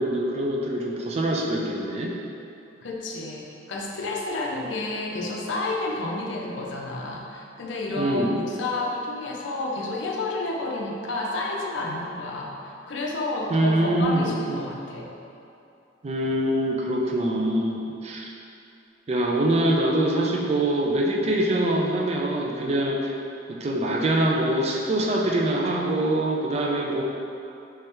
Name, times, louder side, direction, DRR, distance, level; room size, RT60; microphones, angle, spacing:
voice 1, 0.0-2.1 8.0-8.4 13.5-14.6 16.0-18.3 19.1-23.2 23.5-27.0, right 1 dB, 35° right, -1 dB, 0.3 m, -24 dB
voice 2, 2.8-15.1, left 2 dB, 70° left, -1 dB, 0.5 m, -30 dB
3.3 x 3.3 x 2.9 m, 2.7 s
head